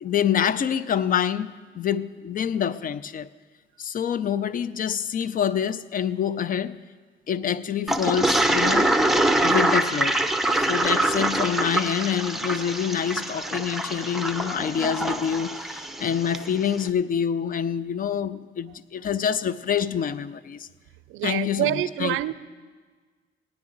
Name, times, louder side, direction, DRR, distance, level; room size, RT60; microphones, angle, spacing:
voice 1, 0.0-3.3 3.8-6.8 7.3-8.9 9.4-10.2 10.5-20.7 21.2-22.3, left 8 dB, 45° left, 0.4 m, -26 dB
Toilet flush, 7.9-16.5, right 1 dB, ahead, 0.8 m, -24 dB
voice 2, 21.1-22.3, right 14 dB, 85° right, 0.4 m, -26 dB
18.0 x 9.6 x 3.9 m
cardioid pair, 90°, 20 cm